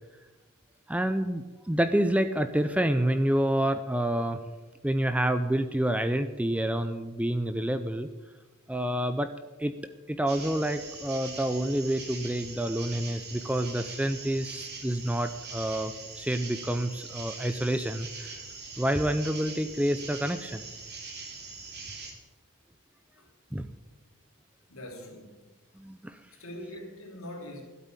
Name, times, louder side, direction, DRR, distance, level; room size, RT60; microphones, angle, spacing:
voice 1, 0.9-4.4 4.8-8.1 8.7-9.3 9.6-9.7 10.1-18.4 18.8-20.6 23.5-23.7 25.8-26.2, right 1 dB, 5° right, 10 dB, 0.5 m, -28 dB
sound 1, 10.3-22.1, right 4 dB, 45° right, 2.8 m, -42 dB
voice 2, 24.7-25.4 26.4-27.6, left 1 dB, 65° left, 1 dB, 3.2 m, -42 dB
13.0 x 8.3 x 8.9 m, 1.2 s
head